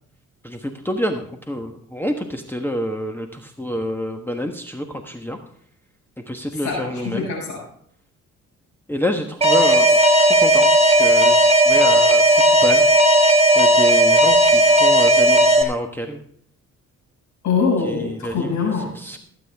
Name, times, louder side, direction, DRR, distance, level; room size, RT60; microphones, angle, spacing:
voice 1, 0.4-5.4 6.3-7.3 8.9-12.8 13.5-16.2 17.9-18.5 19.0-19.2, equal, 5° left, 4 dB, 1.3 m, -28 dB
voice 2, 6.5-7.6 17.4-18.9, left 5 dB, 70° left, -3 dB, 6.4 m, -23 dB
Alarm, 9.4-15.6, right 1 dB, 20° right, 2.1 m, -14 dB
18.0 x 8.6 x 3.5 m, 0.63 s
cardioid pair, 90°, 30 cm